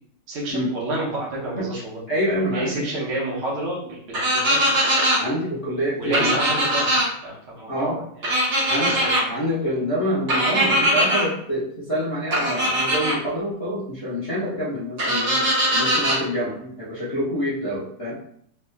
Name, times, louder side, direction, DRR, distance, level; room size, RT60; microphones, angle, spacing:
voice 1, 0.3-2.0 2.4-4.6 6.0-8.0 8.8-9.3, right 1 dB, 80° right, -5 dB, 2.1 m, -29 dB
voice 2, 2.1-2.9 5.2-6.4 7.7-8.0 8.7-9.0 9.3-18.1, equal, 45° left, -9 dB, 0.4 m, -26 dB
sound 1, 4.1-5.2 6.1-7.1 8.2-9.2 10.3-11.2 12.3-13.2 15.0-16.2, equal, 45° right, 1.0 m, -21 dB
4.2 x 3.0 x 2.3 m, 0.67 s
omnidirectional pair, 2.3 m